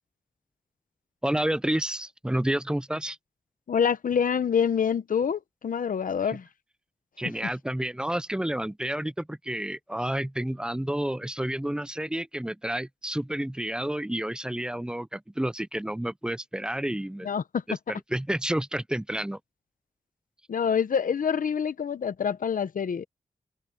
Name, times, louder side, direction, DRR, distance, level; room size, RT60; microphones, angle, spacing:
voice 1, 1.2-3.2 7.2-17.3 17.7-19.4, right 1 dB, 5° right, 0.5 m, -30 dB
voice 2, 3.7-6.5 17.2-17.6 20.5-23.1, left 7 dB, 75° left, 0.8 m, -26 dB
open air
wide cardioid pair, 135°, 14 cm